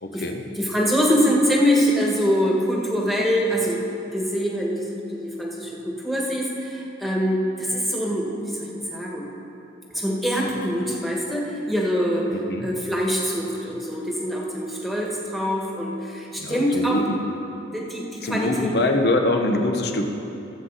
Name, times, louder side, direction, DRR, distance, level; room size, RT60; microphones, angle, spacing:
voice 1, 0.0-0.4 12.3-12.7 16.4-17.1 18.2-20.0, left 2 dB, 55° left, 4 dB, 1.0 m, -24 dB
voice 2, 0.5-3.8 4.1-8.3 8.6-9.2 9.9-12.3 12.6-17.0 17.7-18.7, equal, ahead, -3 dB, 1.6 m, -24 dB
19.5 x 8.0 x 4.1 m, 3.0 s
head